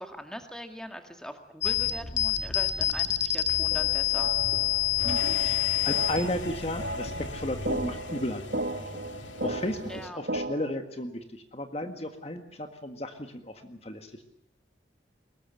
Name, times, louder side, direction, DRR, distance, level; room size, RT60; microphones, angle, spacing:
voice 1, 0.0-4.3 9.9-10.2, equal, 5° left, 5 dB, 2.0 m, -41 dB
sound 1, 1.6-8.0, left 12 dB, 70° left, 1.7 m, -28 dB
sound 2, 3.7-10.7, right 1 dB, 65° right, 1.7 m, -36 dB
sound 3, 5.0-10.1, left 3 dB, 85° left, 2.1 m, -41 dB
voice 2, 5.0-8.8 9.4-14.2, left 1 dB, 35° left, 6 dB, 1.8 m, -34 dB
23.0 x 21.0 x 7.8 m, 0.73 s
head